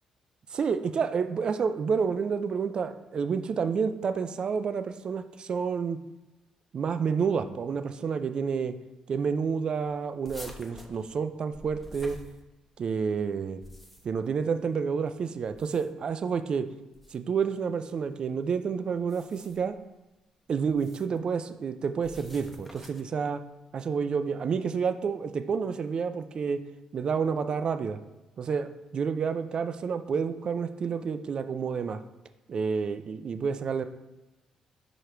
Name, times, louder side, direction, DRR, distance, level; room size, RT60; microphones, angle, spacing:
voice 1, 0.5-6.0 6.7-8.8 9.1-12.2 12.8-13.6 14.0-16.7 17.1-19.7 20.5-23.4 23.7-26.6 26.9-28.0 28.4-32.0 32.5-33.8, right 6 dB, 45° right, 10 dB, 0.5 m, -29 dB
sound 1, 10.2-12.9 13.4-14.3 15.4-16.1 16.9-17.2 19.0-19.7 20.7-21.2 22.0-23.2, left 1 dB, 5° left, 0.9 m, -48 dB
5.4 x 4.9 x 4.5 m, 1.0 s
cardioid pair, 100°, 2 cm